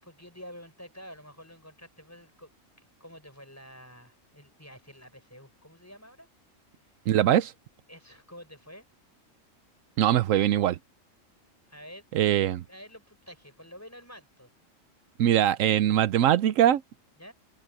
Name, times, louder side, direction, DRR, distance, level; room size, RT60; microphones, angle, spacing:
voice 1, 0.0-2.5 2.8-6.3 6.8-6.9 7.9-8.8 11.7-12.1 12.3-14.5 17.2-17.3, equal, 10° left, 5.9 m, -49 dB
voice 2, 7.1-7.5 10.0-10.8 12.1-12.6 15.2-16.8, right 11 dB, 80° right, 1.0 m, -22 dB
omnidirectional pair, 1.3 m